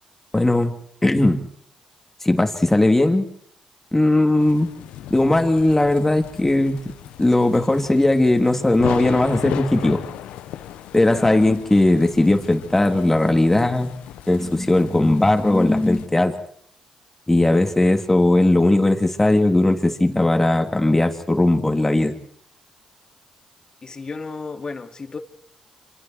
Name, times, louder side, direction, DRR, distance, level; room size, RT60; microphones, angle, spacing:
voice 1, 0.3-0.7 1.0-1.5 2.2-3.3 3.9-4.7 5.1-6.8 7.2-10.0 10.9-13.9 14.3-16.4 17.3-22.2, left 2 dB, 15° left, 3.4 m, -18 dB
sound 1, 4.4-16.1, left 12 dB, 85° left, 1.2 m, -36 dB
voice 2, 11.0-11.4 23.8-25.2, left 4 dB, 40° left, 2.4 m, -33 dB
26.5 x 26.5 x 4.8 m
supercardioid pair, 55°, 2 cm